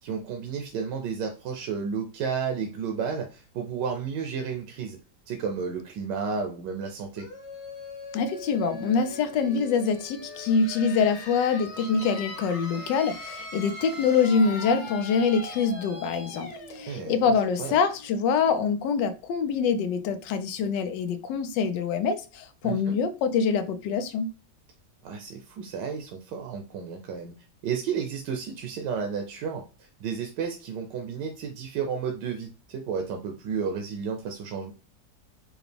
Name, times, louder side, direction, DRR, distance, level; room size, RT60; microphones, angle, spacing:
voice 1, 0.0-5.0 5.3-7.3 16.9-17.3 17.6-17.8 22.6-23.0 25.0-27.3 27.6-34.7, right 6 dB, 80° right, 1.3 m, -32 dB
sound 1, 7.2-18.7, left 2 dB, 45° left, 1.1 m, -41 dB
voice 2, 8.1-24.3, left 5 dB, 85° left, 1.3 m, -25 dB
4.9 x 2.4 x 3.3 m
omnidirectional pair, 1.9 m